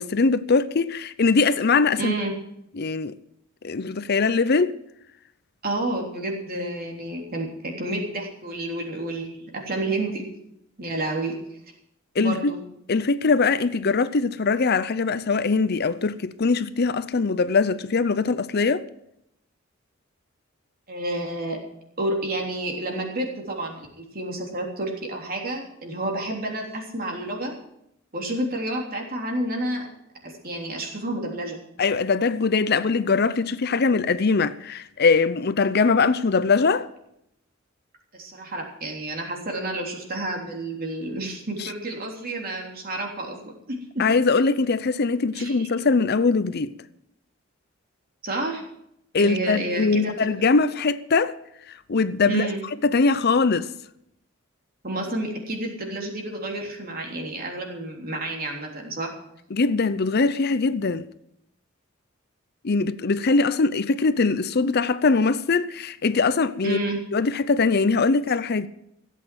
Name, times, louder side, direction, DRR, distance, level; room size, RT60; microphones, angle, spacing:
voice 1, 0.0-2.1 2.7-3.2 3.6-4.7 12.2-12.5 12.9-18.8 31.8-36.9 41.6-41.7 44.0-46.7 49.1-51.3 51.7-52.5 52.8-53.7 59.5-61.1 62.6-66.8 67.1-68.7, left 4 dB, 50° left, 0.6 m, -22 dB
voice 2, 2.0-2.3 5.6-10.3 10.8-11.3 12.2-12.6 20.9-21.6 22.0-27.5 28.1-29.9 30.2-31.6 38.1-44.0 45.3-45.7 48.2-48.6 49.2-50.3 52.2-52.6 54.8-59.1 66.6-67.0, right 2 dB, 45° right, 3.4 m, -30 dB
16.5 x 8.3 x 7.7 m
head